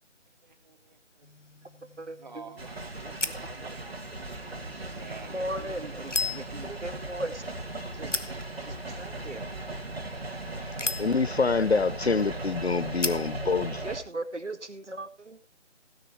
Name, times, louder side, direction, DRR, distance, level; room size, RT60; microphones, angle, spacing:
voice 1, 0.4-1.3 2.2-6.7, right 4 dB, 40° right, 2.2 m, -50 dB
sound 1, 1.2-13.9, left 3 dB, 90° left, 1.4 m, -39 dB
voice 2, 2.0-2.4 3.3-3.4 4.4-4.6 5.3-7.4 7.9-8.1 8.7-9.4 13.8-15.5, right 1 dB, 75° right, 2.1 m, -37 dB
sound 2, 2.6-14.0, right 2 dB, 55° right, 2.5 m, -37 dB
voice 3, 11.0-13.8, left 4 dB, 60° left, 0.7 m, -26 dB
17.0 x 10.5 x 3.1 m
figure-of-eight pair, 160°, 36 cm